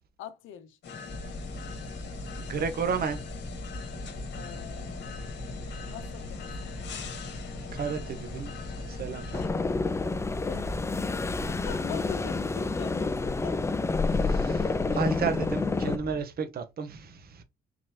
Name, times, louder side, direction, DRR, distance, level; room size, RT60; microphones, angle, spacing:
voice 1, 0.2-0.8 4.3-5.6 5.9-6.5 10.4-10.8 11.5-13.1 13.4-13.6, left 10 dB, 90° left, 0.7 m, -42 dB
sound 1, 0.8-9.5, left 5 dB, 65° left, 1.2 m, -42 dB
sound 2, 1.1-16.2, left 1 dB, 5° right, 1.0 m, -41 dB
voice 2, 2.4-3.2 7.7-8.5 8.9-9.4 14.1-17.4, right 6 dB, 50° right, 0.8 m, -32 dB
sound 3, 9.3-16.0, left 3 dB, 15° left, 0.3 m, -29 dB
3.9 x 3.1 x 2.9 m
cardioid pair, 90°, 20 cm